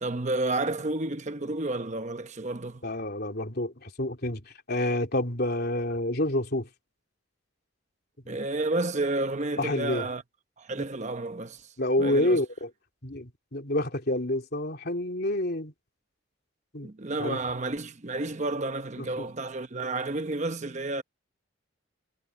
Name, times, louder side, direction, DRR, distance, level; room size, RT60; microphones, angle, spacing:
voice 1, 0.0-2.8 8.3-10.2 10.6-11.7 12.0-12.4 16.8-21.0, right 2 dB, 35° right, 0.9 m, -31 dB
voice 2, 2.8-6.7 8.3-8.4 9.6-10.1 11.8-12.7 13.0-15.7 16.7-16.9 17.2-17.4 19.0-19.1, left 1 dB, 50° left, 3.4 m, -28 dB
head